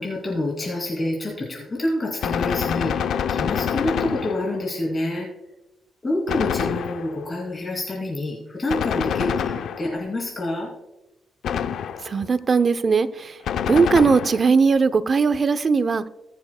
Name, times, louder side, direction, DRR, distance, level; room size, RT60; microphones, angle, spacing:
voice 1, 0.0-5.3 6.0-10.7, left 1 dB, 30° left, -3 dB, 2.6 m, -27 dB
Gunshot gunfire, 2.2-4.7 6.3-7.3 8.7-10.1 11.4-12.3 13.5-14.6, left 8 dB, 80° left, 0.5 m, -26 dB
voice 2, 12.0-13.4 13.7-16.1, right 5 dB, 40° right, 13 dB, 0.6 m, -19 dB
19.0 x 7.1 x 2.2 m, 0.94 s
cardioid pair, 90°, 0 cm